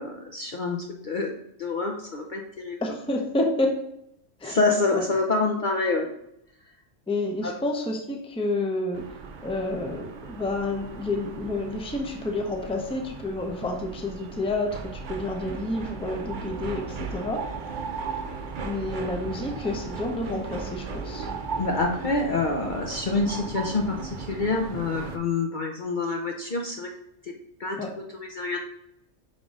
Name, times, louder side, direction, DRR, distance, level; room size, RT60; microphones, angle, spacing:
voice 1, 0.0-1.3 1.6-2.8 4.4-6.1 7.4-7.5 21.6-26.9 27.6-28.6, left 3 dB, 50° left, 2 dB, 0.7 m, -27 dB
voice 2, 2.8-3.8 4.4-4.6 4.9-5.0 7.1-9.0 9.4-17.4 18.6-21.3 27.8-27.9, left 2 dB, 5° left, 2 dB, 0.6 m, -29 dB
sound 1, 8.9-25.2, right 4 dB, 50° right, 0.7 m, -37 dB
5.3 x 3.7 x 5.2 m, 0.78 s
omnidirectional pair, 1.3 m